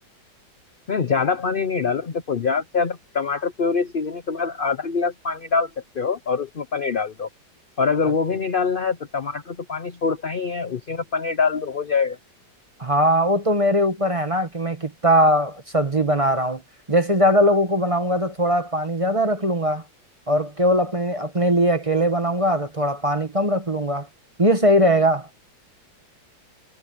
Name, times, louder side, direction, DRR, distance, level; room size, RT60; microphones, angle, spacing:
voice 1, 0.9-7.3 7.8-12.2, left 5 dB, 60° left, 0.5 m, -24 dB
voice 2, 12.8-16.6 16.9-19.8 20.3-24.1 24.4-25.3, equal, 20° right, 1.0 m, -20 dB
omnidirectional pair, 2.1 m